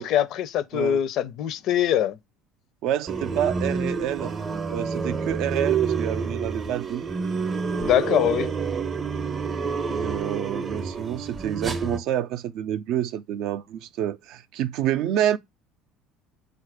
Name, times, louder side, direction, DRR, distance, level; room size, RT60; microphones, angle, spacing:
voice 1, 0.0-2.2 7.8-8.5, left 10 dB, 60° left, 0.5 m, -23 dB
voice 2, 2.8-4.3 4.7-7.0 9.9-15.4, right 11 dB, 65° right, 0.4 m, -28 dB
sound 1, 3.1-12.0, right 5 dB, 30° right, 0.6 m, -28 dB
4.1 x 2.4 x 4.7 m
supercardioid pair, 100°, 0 cm